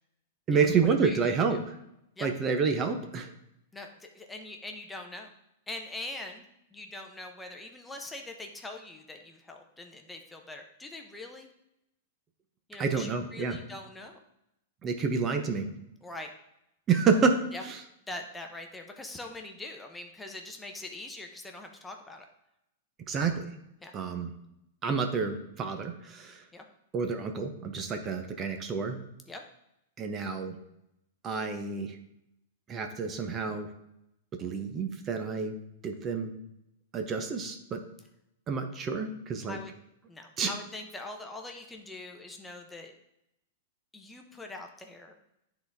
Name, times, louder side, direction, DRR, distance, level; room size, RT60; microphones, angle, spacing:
voice 1, 0.5-1.7 2.2-3.3 12.8-13.6 14.8-15.7 16.9-17.8 23.1-23.5 23.9-24.3 24.8-26.4 26.9-29.0 30.0-30.6 31.2-32.0 32.7-33.7 34.4-35.5 35.8-36.3 36.9-37.8 38.5-39.6 40.4-40.5, right 5 dB, 25° right, 6 dB, 0.8 m, -29 dB
voice 2, 1.0-1.6 2.2-2.3 3.7-5.3 5.7-6.5 6.7-11.5 12.7-14.2 16.0-16.3 17.5-17.6 18.1-22.3 23.8-23.9 26.5-26.6 29.3-29.4 39.5-39.7 40.1-42.9 43.9-45.1, left 2 dB, 10° left, 3 dB, 0.8 m, -43 dB
9.5 x 3.9 x 3.5 m, 0.81 s
hypercardioid pair, 125°, 0 cm